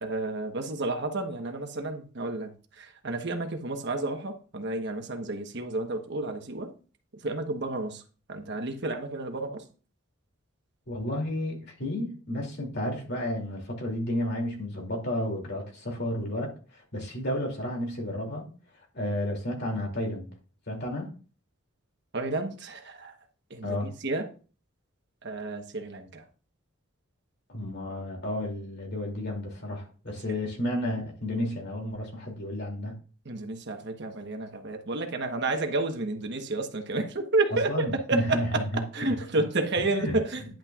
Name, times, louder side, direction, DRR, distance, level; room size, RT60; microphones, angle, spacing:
voice 1, 0.0-6.7 7.2-8.0 8.3-9.6 22.1-23.1 23.5-24.2 25.2-26.2 30.1-30.3 33.2-40.4, right 2 dB, 55° right, 1.2 m, -31 dB
voice 2, 10.9-18.5 18.9-20.3 20.7-21.1 23.6-23.9 27.5-33.0 37.7-39.1 39.9-40.2, left 1 dB, 50° left, 2.8 m, -32 dB
10.5 x 8.6 x 2.4 m
head